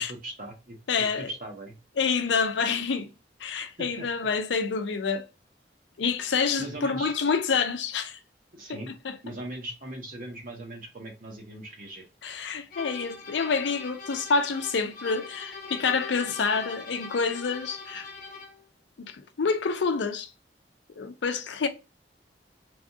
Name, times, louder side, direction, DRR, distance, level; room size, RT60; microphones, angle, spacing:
voice 1, 0.0-1.8 3.8-4.1 6.6-7.1 8.5-8.9 9.2-12.0, right 1 dB, 50° right, 0.9 m, -39 dB
voice 2, 0.9-1.3 2.0-3.1 3.4-5.2 6.0-8.2 9.0-9.2 12.2-18.1 19.0-20.3 21.0-21.7, left 5 dB, 85° left, 0.5 m, -27 dB
sound 1, 12.7-18.6, left 4 dB, 50° left, 0.7 m, -42 dB
3.4 x 2.3 x 2.6 m
head